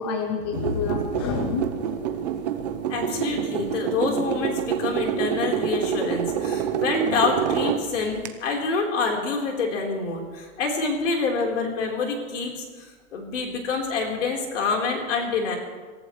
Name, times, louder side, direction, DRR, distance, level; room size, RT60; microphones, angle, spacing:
voice 1, 0.0-2.0, left 5 dB, 20° left, 4 dB, 0.6 m, -28 dB
sound 1, 0.5-8.3, right 8 dB, 30° right, 0.8 m, -27 dB
voice 2, 2.9-12.9 13.1-15.6, left 4 dB, 60° left, 0 dB, 4.2 m, -27 dB
26.5 x 14.5 x 3.2 m, 1.4 s
hypercardioid pair, 175°, 42 cm